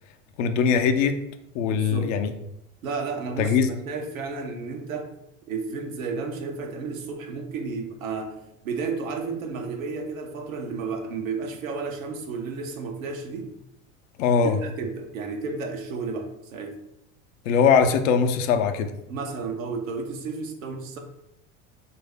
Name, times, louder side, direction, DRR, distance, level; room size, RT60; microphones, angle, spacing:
voice 1, 0.4-1.2 1.5-2.3 3.4-3.7 14.2-14.6 17.5-18.9, left 6 dB, 70° left, 7 dB, 0.5 m, -21 dB
voice 2, 1.7-2.1 2.8-5.1 5.5-8.4 8.6-13.5 14.4-16.7 19.1-21.0, right 4 dB, 85° right, 4 dB, 0.6 m, -32 dB
3.3 x 2.5 x 3.4 m, 0.83 s
hypercardioid pair, 75°, 40 cm